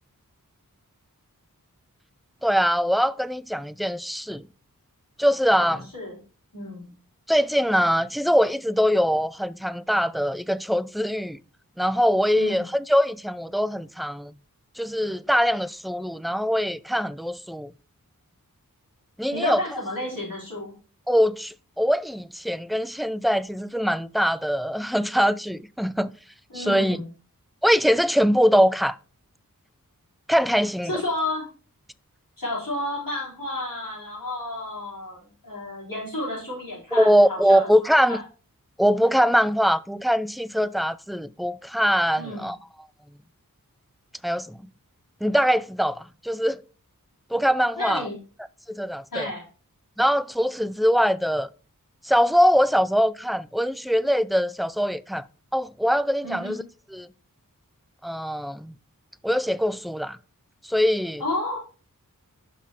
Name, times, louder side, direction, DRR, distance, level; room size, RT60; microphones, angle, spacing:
voice 1, 2.4-4.4 5.2-5.8 7.3-11.4 11.8-14.3 14.8-17.7 19.2-19.6 21.1-26.1 26.5-27.0 27.6-29.0 30.3-31.0 36.9-38.2 38.8-42.6 44.2-44.6 45.2-46.6 47.3-48.1 48.7-49.3 50.0-51.5 52.0-55.2 55.5-56.6 56.9-57.1 58.0-58.8 59.2-60.2 60.6-61.2, equal, ahead, 0.3 m, -22 dB
voice 2, 5.6-6.2 6.5-6.9 12.3-12.7 19.3-20.7 26.5-27.1 30.9-31.5 32.4-37.7 38.1-38.2 42.2-42.5 47.8-48.2 49.1-49.4 56.2-56.6 61.2-61.6, left 2 dB, 70° left, 4.6 m, -31 dB
6.0 x 5.7 x 4.6 m
wide cardioid pair, 40°, 35 cm